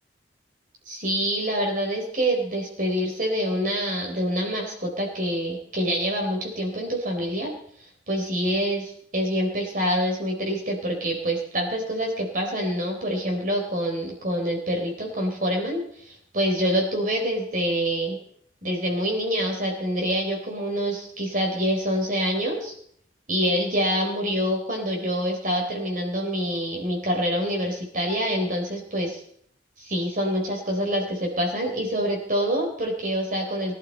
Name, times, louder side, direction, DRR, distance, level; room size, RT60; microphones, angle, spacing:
voice 1, 0.9-7.5 8.1-18.2 18.6-22.7 23.3-29.2 29.8-33.8, equal, 45° right, 1 dB, 3.9 m, -26 dB
22.0 x 12.0 x 4.2 m, 0.65 s
head